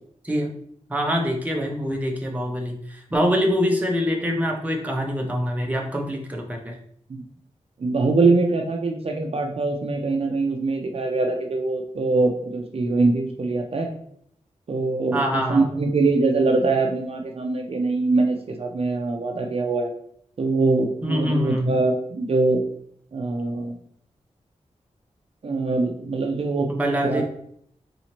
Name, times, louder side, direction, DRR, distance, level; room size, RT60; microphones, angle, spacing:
voice 1, 0.9-6.8 15.1-15.6 21.0-21.7 26.7-27.2, equal, 10° right, 0 dB, 0.7 m, -24 dB
voice 2, 7.8-13.9 14.7-19.9 20.4-22.6 23.1-23.8 25.4-26.7 27.0-27.2, right 3 dB, 50° right, 2 dB, 0.5 m, -23 dB
4.1 x 2.7 x 3.0 m, 0.65 s
wide cardioid pair, 125°, 12 cm